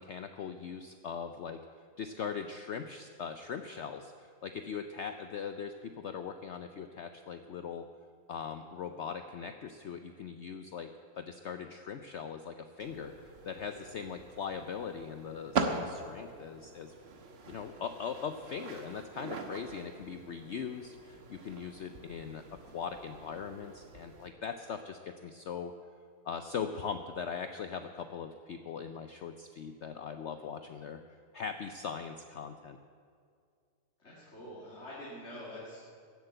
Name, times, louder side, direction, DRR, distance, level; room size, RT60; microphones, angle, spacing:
voice 1, 0.0-1.6 2.0-7.9 8.3-17.0 17.5-25.7 26.2-31.0 31.3-32.8, left 6 dB, 65° left, 8 dB, 0.7 m, -40 dB
sound 1, 12.8-24.3, right 4 dB, 45° right, 1.2 m, -42 dB
voice 2, 34.0-35.8, left 1 dB, 40° left, -6 dB, 2.6 m, -45 dB
15.5 x 8.1 x 7.8 m, 2.2 s
omnidirectional pair, 1.7 m